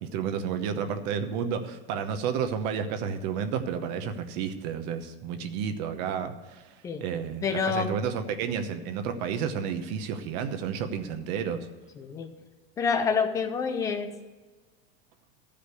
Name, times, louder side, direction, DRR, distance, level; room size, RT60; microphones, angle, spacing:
voice 1, 0.0-6.7 7.0-11.7, right 7 dB, 45° right, 9 dB, 0.9 m, -31 dB
voice 2, 7.4-8.0 12.0-12.3 12.8-14.1, left 5 dB, 10° left, 7 dB, 0.4 m, -27 dB
13.0 x 5.1 x 8.1 m, 1.3 s
supercardioid pair, 175°, 30 cm